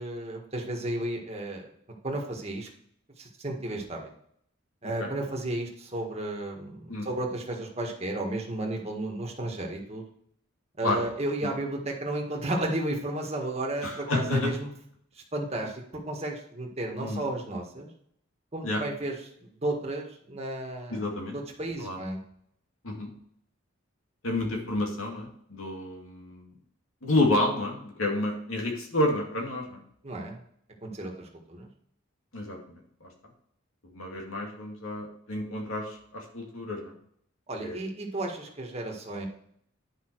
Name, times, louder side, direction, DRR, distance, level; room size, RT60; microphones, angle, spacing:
voice 1, 0.0-1.7 2.0-2.7 3.2-4.0 4.8-10.0 10.8-14.7 15.1-17.9 18.5-19.1 19.4-21.1 21.3-22.2 30.0-30.4 30.8-31.7 37.5-39.3, right 1 dB, 30° right, 1 dB, 1.6 m, -33 dB
voice 2, 13.8-14.5 17.0-17.2 18.6-18.8 20.9-21.4 21.8-22.0 22.8-23.1 24.2-26.5 27.0-29.8 32.3-33.1 33.9-36.9 37.6-37.8, left 2 dB, 85° left, 1 dB, 2.2 m, -30 dB
10.0 x 5.5 x 4.6 m, 0.67 s
head